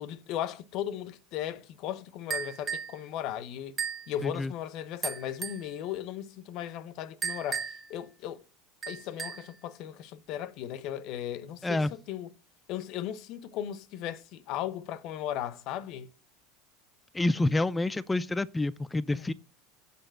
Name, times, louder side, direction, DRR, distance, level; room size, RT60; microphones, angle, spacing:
voice 1, 0.0-3.8 4.1-8.4 8.9-11.8 12.1-12.3 12.7-16.1 19.1-19.3, left 11 dB, 60° left, 0.8 m, -36 dB
sound 1, 2.3-3.0 3.8-4.1 5.0-5.7 7.2-7.9 8.8-9.5, right 7 dB, 30° right, 1.1 m, -35 dB
voice 2, 17.1-19.3, left 2 dB, 15° left, 0.4 m, -28 dB
6.8 x 5.2 x 6.3 m
hypercardioid pair, 90°, 0 cm